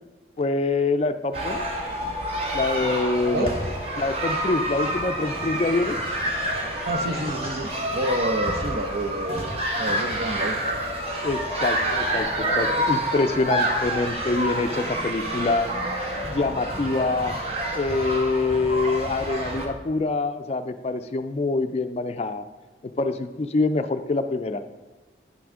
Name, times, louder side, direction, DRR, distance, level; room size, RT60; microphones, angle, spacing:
voice 1, 0.4-1.6 2.5-3.6 4.0-6.0 11.2-15.7 16.3-17.3 17.7-22.4 22.8-24.6, left 3 dB, 35° left, 9 dB, 0.3 m, -25 dB
sound 1, 1.3-19.7, right 1 dB, 35° right, 1.1 m, -28 dB
voice 2, 6.8-9.5 9.8-10.8, right 1 dB, 60° right, 6 dB, 0.7 m, -29 dB
9.7 x 6.0 x 3.6 m, 1.3 s
head